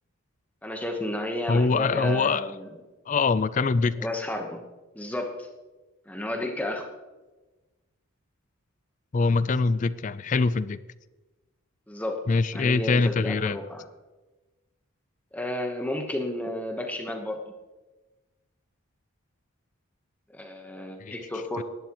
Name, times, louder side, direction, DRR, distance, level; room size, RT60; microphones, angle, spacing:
voice 1, 0.6-2.7 4.0-4.6 4.9-5.5 6.1-6.9 11.9-12.2 12.5-13.8 15.3-17.4 20.3-21.6, left 1 dB, 5° left, 3 dB, 1.0 m, -32 dB
voice 2, 1.5-2.5 3.1-4.1 9.1-10.8 12.3-13.6 21.0-21.1 21.6-21.7, left 4 dB, 35° left, 16 dB, 0.3 m, -24 dB
17.0 x 11.5 x 3.0 m, 1.2 s
head